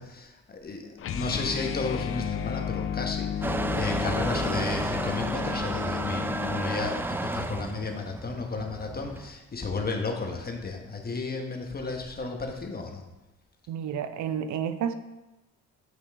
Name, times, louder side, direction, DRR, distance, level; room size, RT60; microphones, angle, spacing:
voice 1, 0.0-13.0, left 3 dB, 30° left, 3 dB, 1.3 m, -33 dB
sound 1, 1.0-7.1, left 9 dB, 45° left, 0.5 m, -33 dB
Motor vehicle (road) / Engine starting / Accelerating revving vroom, 3.4-9.3, right 2 dB, 5° right, 0.4 m, -32 dB
voice 2, 13.7-14.9, right 8 dB, 70° right, 11 dB, 0.6 m, -30 dB
7.9 x 5.4 x 3.6 m, 1.0 s
cardioid pair, 90°, 30 cm